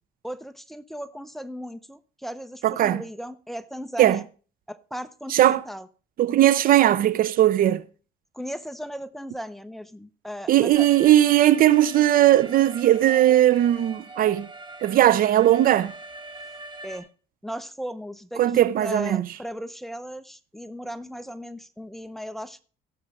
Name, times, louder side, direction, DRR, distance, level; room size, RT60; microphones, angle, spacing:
voice 1, 0.2-4.3 4.7-5.9 8.3-10.9 16.8-17.1 17.4-22.6, equal, ahead, 0.7 m, -37 dB
voice 2, 2.6-3.0 4.0-4.2 5.3-5.6 6.2-7.8 10.5-14.5 14.8-15.9 18.4-19.3, right 13 dB, 55° right, 0.6 m, -18 dB
Alarm, 10.7-17.0, right 2 dB, 30° right, 2.1 m, -42 dB
16.0 x 6.5 x 3.5 m
cardioid pair, 110°, 17 cm